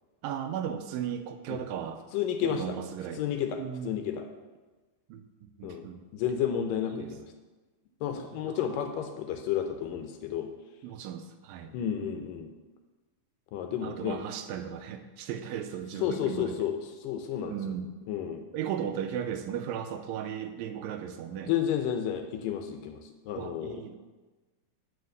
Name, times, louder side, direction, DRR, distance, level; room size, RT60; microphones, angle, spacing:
voice 1, 0.2-2.0 2.4-3.2 3.6-4.1 5.1-6.0 6.9-7.1 8.2-8.7 10.8-11.7 13.8-16.7 17.4-17.9 18.5-21.5 23.4-23.9, right 9 dB, 80° right, 8 dB, 2.2 m, -36 dB
voice 2, 2.1-2.6 3.2-3.6 3.8-4.3 5.6-5.8 6.1-7.3 8.0-10.5 11.7-12.5 13.5-14.2 16.0-17.5 18.1-18.4 21.5-23.8, left 9 dB, 75° left, 6 dB, 2.2 m, -31 dB
10.5 x 5.0 x 6.5 m, 1.2 s
omnidirectional pair, 4.3 m